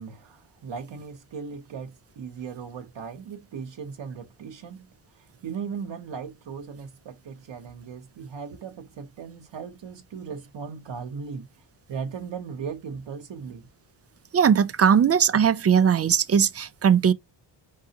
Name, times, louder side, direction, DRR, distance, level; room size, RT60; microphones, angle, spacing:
voice 1, 0.0-4.9 5.1-11.5 11.9-13.7, right 6 dB, 65° right, 0.9 m, -37 dB
voice 2, 14.3-17.1, right 7 dB, 35° right, 0.4 m, -19 dB
4.6 x 3.6 x 2.8 m
cardioid pair, 65°, 48 cm